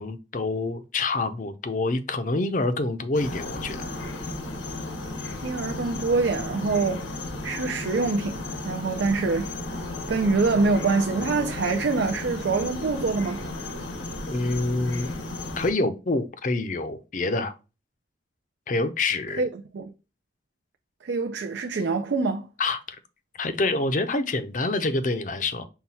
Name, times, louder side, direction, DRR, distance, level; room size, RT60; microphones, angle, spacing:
voice 1, 0.0-3.9 14.3-15.1 15.6-17.5 18.7-19.4 22.6-22.8 23.4-25.6, left 2 dB, 45° left, 0.5 m, -26 dB
sound 1, 3.1-15.7, left 2 dB, 90° left, 1.1 m, -34 dB
voice 2, 5.4-7.1 7.4-9.5 10.1-13.4 19.4-19.9 21.0-22.5, right 4 dB, 70° right, 0.4 m, -25 dB
5.6 x 2.3 x 4.1 m
head